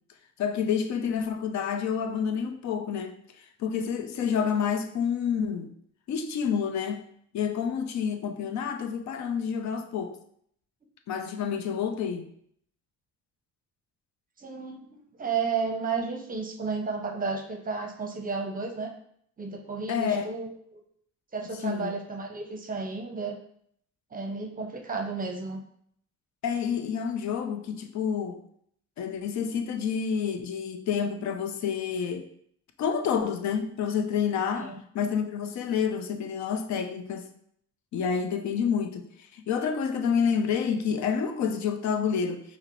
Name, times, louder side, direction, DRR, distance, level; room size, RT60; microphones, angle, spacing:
voice 1, 0.4-3.1 3.6-5.7 6.1-7.0 7.3-10.2 11.1-12.3 19.9-20.3 21.6-21.9 26.4-28.4 29.0-32.3 32.8-34.7 34.9-37.3 37.9-42.4, left 7 dB, 65° left, 0.5 m, -28 dB
voice 2, 14.4-18.9 19.4-20.8 21.3-23.4 24.1-25.6 34.5-34.7, right 4 dB, 30° right, 0.6 m, -32 dB
4.8 x 2.1 x 3.0 m
cardioid pair, 90°, 30 cm